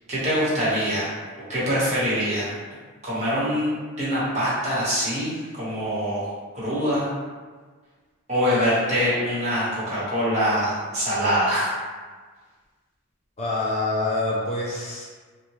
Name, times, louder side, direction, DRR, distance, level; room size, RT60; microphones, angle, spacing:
voice 1, 0.1-1.1 1.5-2.5 3.0-3.7 4.0-6.3 6.5-7.1 8.3-11.7, equal, 30° right, -10 dB, 1.0 m, -24 dB
voice 2, 13.4-15.0, left 2 dB, 30° left, -4 dB, 0.3 m, -26 dB
2.7 x 2.2 x 3.0 m, 1.5 s
head